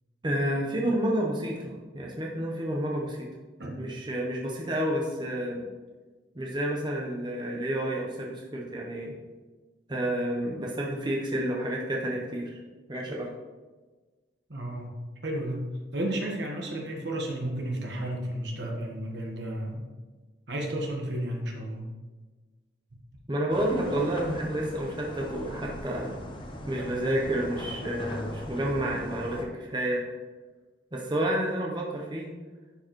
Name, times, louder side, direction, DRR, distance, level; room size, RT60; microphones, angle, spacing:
voice 1, 0.2-3.3 3.8-5.6 6.3-9.1 9.9-12.6 12.9-13.3 23.3-26.2 26.7-30.0 30.9-32.3, right 1 dB, 25° right, -2 dB, 0.8 m, -30 dB
voice 2, 14.5-14.9 15.2-19.9 20.5-21.8, right 1 dB, 70° right, 0 dB, 1.3 m, -32 dB
sound 1, 23.5-29.5, left 1 dB, 25° left, 0.7 m, -39 dB
10.5 x 4.6 x 3.1 m, 1.3 s
head